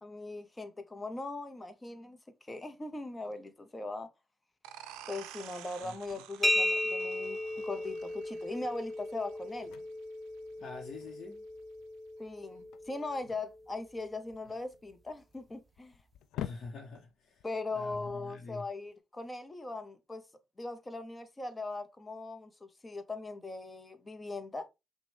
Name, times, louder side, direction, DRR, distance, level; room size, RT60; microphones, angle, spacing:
voice 1, 0.0-2.2 2.5-4.1 5.1-9.7 12.2-15.9 17.4-20.2 20.6-24.7, left 2 dB, 25° left, 0.9 m, -40 dB
sound 1, 4.6-10.0, right 11 dB, 80° right, 0.4 m, -51 dB
sound 2, 5.8-18.9, left 10 dB, 75° left, 0.3 m, -50 dB
voice 2, 5.8-6.2 10.6-11.4 16.4-17.5 17.7-18.6, left 3 dB, 60° left, 0.9 m, -46 dB
sound 3, 6.4-14.0, left 1 dB, 15° right, 0.7 m, -36 dB
5.9 x 2.3 x 3.4 m
hypercardioid pair, 50°, 0 cm